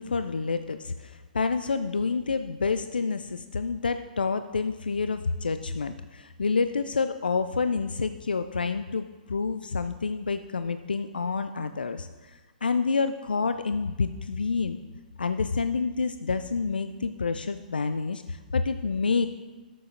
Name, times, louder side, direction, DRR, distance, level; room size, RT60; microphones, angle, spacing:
voice 1, 0.0-14.8 15.2-19.3, left 4 dB, 80° left, 10 dB, 0.3 m, -28 dB
12.0 x 8.0 x 2.6 m, 1.2 s
figure-of-eight pair, 115°, 5 cm